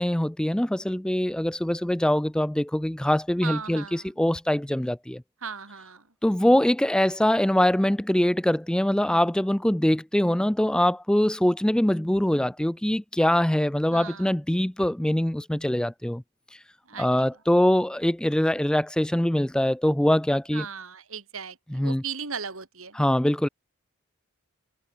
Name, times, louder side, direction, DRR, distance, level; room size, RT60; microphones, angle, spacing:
voice 1, 0.0-5.2 6.2-16.2 17.0-20.7 21.7-22.0 23.0-23.5, left 1 dB, 5° left, 0.3 m, -23 dB
voice 2, 3.4-4.1 5.4-6.1 13.9-14.3 16.9-17.3 20.5-23.0, right 6 dB, 65° right, 3.2 m, -37 dB
head